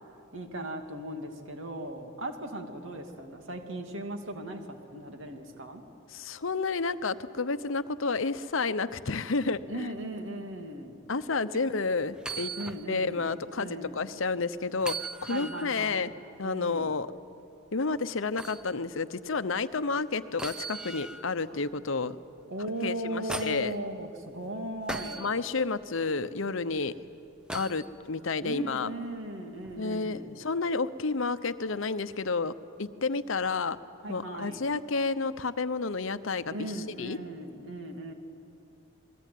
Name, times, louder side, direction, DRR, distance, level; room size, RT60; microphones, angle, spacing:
voice 1, 0.3-5.9 9.7-11.0 11.5-11.6 12.6-14.0 15.3-16.1 16.4-16.9 21.5-21.6 22.5-25.3 28.4-30.3 34.0-34.6 36.5-38.1, right 1 dB, 65° right, 5 dB, 2.5 m, -38 dB
voice 2, 6.1-9.9 11.1-12.5 12.9-14.9 15.2-16.1 16.4-17.1 17.7-22.2 22.8-23.7 25.1-26.9 27.5-28.9 29.8-33.8 34.1-37.2, left 4 dB, 70° left, 12 dB, 0.8 m, -30 dB
sound 1, 12.2-12.8 13.3-13.4 14.8-15.8 18.4-18.7 20.4-21.3 22.8-23.7 24.9-25.3 27.5-27.9 29.6-29.8, right 3 dB, 5° right, 0.6 m, -38 dB
28.0 x 21.5 x 9.3 m, 2.7 s
head